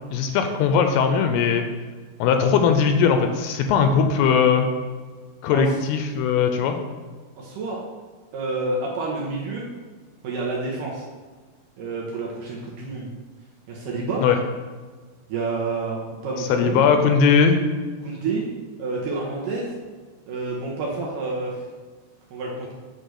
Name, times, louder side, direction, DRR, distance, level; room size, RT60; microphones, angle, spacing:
voice 1, 0.1-1.6 2.2-4.7 5.4-6.8 14.2-14.4 16.4-17.6, left 6 dB, 80° left, 6 dB, 2.5 m, -19 dB
voice 2, 7.4-7.8 8.3-9.7 10.2-11.0 11.8-13.1 13.7-14.2 15.3-17.0 18.0-18.4 18.8-19.7 20.3-21.6 22.3-22.7, right 3 dB, 70° right, -3 dB, 2.2 m, -28 dB
8.1 x 3.9 x 6.3 m, 1.5 s
omnidirectional pair, 4.8 m